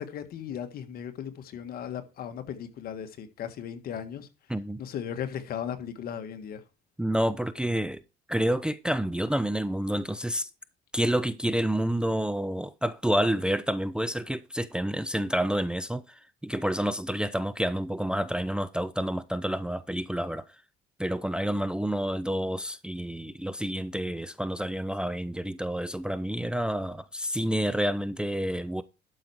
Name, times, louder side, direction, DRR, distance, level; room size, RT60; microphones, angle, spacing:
voice 1, 0.0-4.3 4.8-6.6, left 8 dB, 65° left, 1.6 m, -36 dB
voice 2, 4.5-4.8 7.0-8.0 8.3-10.5 10.9-20.6 21.0-28.8, right 1 dB, 5° right, 0.5 m, -29 dB
12.0 x 5.6 x 4.6 m
cardioid pair, 110°, 17 cm